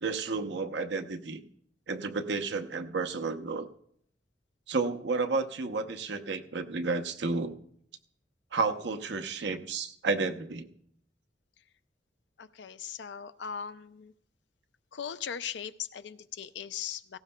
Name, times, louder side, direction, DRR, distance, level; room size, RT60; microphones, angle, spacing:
voice 1, 0.0-1.4 1.9-3.7 4.7-7.5 8.5-10.7, right 3 dB, 70° right, 6 dB, 0.8 m, -31 dB
voice 2, 12.4-14.1 14.9-17.2, left 8 dB, 70° left, 13 dB, 0.5 m, -39 dB
18.0 x 16.0 x 2.2 m, 0.68 s
head